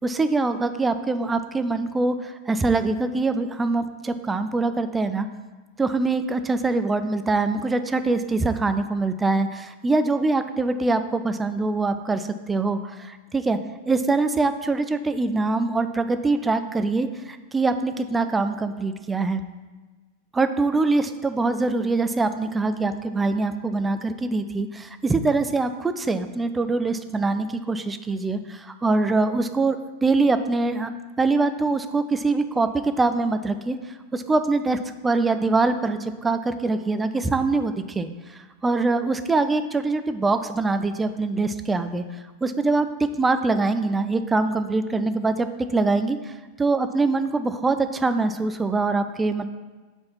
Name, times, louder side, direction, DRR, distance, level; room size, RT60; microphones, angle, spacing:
voice 1, 0.0-5.3 5.8-13.6 13.9-19.4 20.3-30.9 31.2-33.8 34.1-42.0 42.4-42.9 43.1-46.3 46.6-49.5, right 3 dB, 10° right, 10 dB, 0.4 m, -23 dB
4.7 x 4.3 x 5.5 m, 1.3 s
figure-of-eight pair, 90°, 0 cm